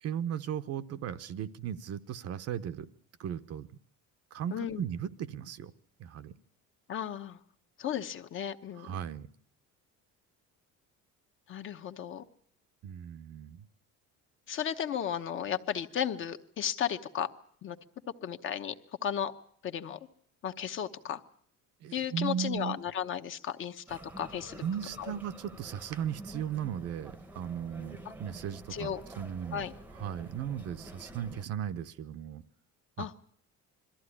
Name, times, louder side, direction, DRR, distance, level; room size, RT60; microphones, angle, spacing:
voice 1, 0.0-2.9 3.2-3.7 4.3-5.7 6.0-6.4 8.8-9.3 12.8-13.6 21.8-22.8 24.6-32.4 33.0-33.1, right 9 dB, 50° right, 12 dB, 0.8 m, -37 dB
voice 2, 4.5-4.8 6.9-7.4 7.8-8.9 11.5-12.2 14.5-17.3 17.6-17.8 18.2-18.7 19.0-19.3 19.6-20.0 20.4-21.2 21.9-24.6 25.0-25.1 28.7-29.0 29.5-29.7 33.0-33.1, left 9 dB, 40° left, 8 dB, 1.0 m, -34 dB
sound 1, 23.9-31.5, right 1 dB, 5° right, 0.9 m, -49 dB
22.0 x 14.0 x 9.8 m, 0.64 s
cardioid pair, 160°, 32 cm